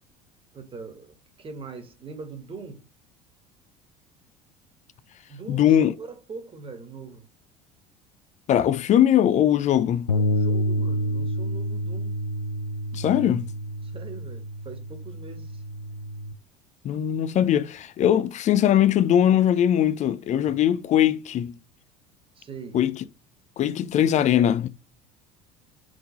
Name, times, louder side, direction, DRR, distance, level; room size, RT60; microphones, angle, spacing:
voice 1, 0.5-2.9 5.3-7.3 10.1-12.1 13.8-15.6 22.4-22.8, right 4 dB, 30° right, 1.8 m, -41 dB
voice 2, 5.5-5.9 8.5-10.1 12.9-13.5 16.8-21.5 22.7-22.9 23.6-24.7, left 10 dB, 40° left, 0.5 m, -21 dB
Bass guitar, 10.1-16.3, equal, 90° left, 0.5 m, -28 dB
4.9 x 3.8 x 5.3 m
figure-of-eight pair, 65°, 19 cm